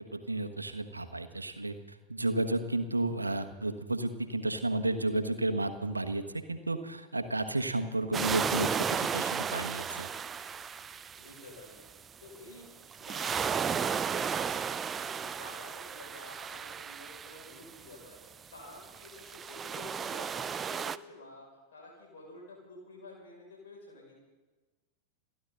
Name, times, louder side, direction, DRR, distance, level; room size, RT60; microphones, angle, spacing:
voice 1, 0.1-10.1, right 2 dB, 80° right, 8 dB, 1.3 m, -32 dB
sound 1, 8.1-11.9 12.9-17.9 18.8-21.0, right 7 dB, 20° right, 0.5 m, -34 dB
voice 2, 9.7-10.5 11.2-13.3 13.6-21.5 21.7-24.1, left 2 dB, 65° left, -2 dB, 6.3 m, -51 dB
29.0 x 11.5 x 4.0 m, 1.2 s
figure-of-eight pair, 90°, 0 cm